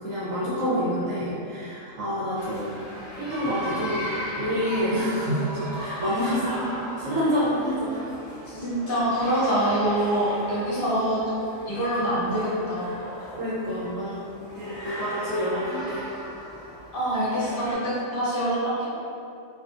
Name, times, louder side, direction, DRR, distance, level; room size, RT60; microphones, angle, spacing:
voice 1, 0.0-2.8 3.2-6.5 7.0-8.0 8.5-8.6 13.3-14.3 14.6-16.1, equal, 80° right, -9 dB, 1.0 m, -27 dB
sound 1, 2.4-17.8, equal, 25° left, 0.4 m, -37 dB
voice 2, 8.5-11.2 11.7-12.9 16.9-18.8, right 1 dB, 50° left, -9 dB, 0.8 m, -25 dB
2.5 x 2.4 x 2.4 m, 2.6 s
omnidirectional pair, 1.4 m